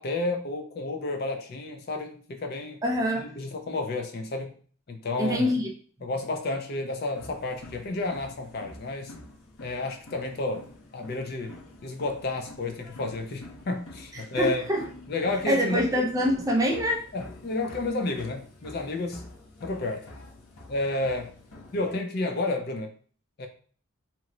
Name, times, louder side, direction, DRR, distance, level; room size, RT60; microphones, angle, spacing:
voice 1, 0.0-2.8 3.2-4.5 4.9-5.5 6.0-9.1 9.6-10.7 10.9-11.6 11.8-14.7 15.1-15.8 17.1-19.3 19.6-20.1 20.7-21.3 21.7-22.9 23.4-23.5, left 2 dB, 45° left, 5 dB, 0.4 m, -31 dB
voice 2, 2.8-3.3 5.2-5.7 14.3-14.8 15.5-17.0, equal, 15° right, 1 dB, 0.4 m, -25 dB
sound 1, 7.1-22.0, left 1 dB, 90° left, 0.8 m, -48 dB
3.0 x 2.1 x 3.7 m, 0.43 s
head